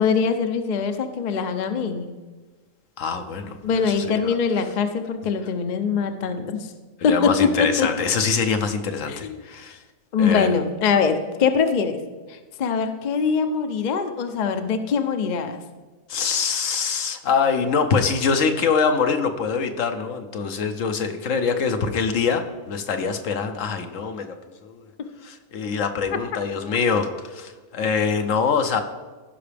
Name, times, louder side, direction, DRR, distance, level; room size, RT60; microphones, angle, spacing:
voice 1, 0.0-2.1 3.6-6.7 7.0-7.9 9.1-9.4 10.1-12.0 12.3-15.6, left 6 dB, 45° left, 7 dB, 0.6 m, -23 dB
voice 2, 3.0-3.6 3.8-4.3 7.0-9.8 10.2-10.5 16.1-24.4 24.6-24.8 25.2-28.8, left 5 dB, 70° left, 7 dB, 1.1 m, -24 dB
15.0 x 5.8 x 3.4 m, 1.3 s
omnidirectional pair, 1.4 m